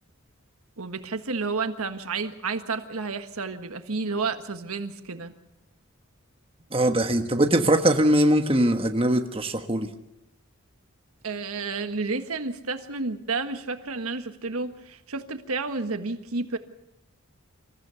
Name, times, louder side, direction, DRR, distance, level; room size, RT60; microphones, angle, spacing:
voice 1, 0.8-5.3 11.2-16.6, right 4 dB, 85° right, 8 dB, 1.5 m, -31 dB
voice 2, 6.7-9.9, right 1 dB, 25° right, 5 dB, 1.3 m, -21 dB
26.5 x 14.5 x 7.0 m, 0.87 s
head